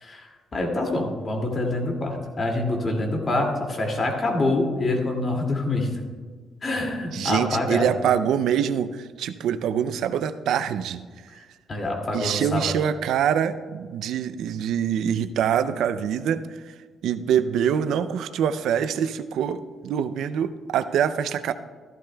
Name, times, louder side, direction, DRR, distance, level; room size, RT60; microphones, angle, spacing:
voice 1, 0.0-5.9 6.6-7.9 11.7-12.8, left 2 dB, 40° left, 1 dB, 2.3 m, -26 dB
voice 2, 7.1-11.0 12.1-16.6 17.0-21.5, right 8 dB, 80° right, 12 dB, 0.4 m, -25 dB
14.0 x 12.0 x 2.3 m, 1.5 s
cardioid pair, 90°, 0 cm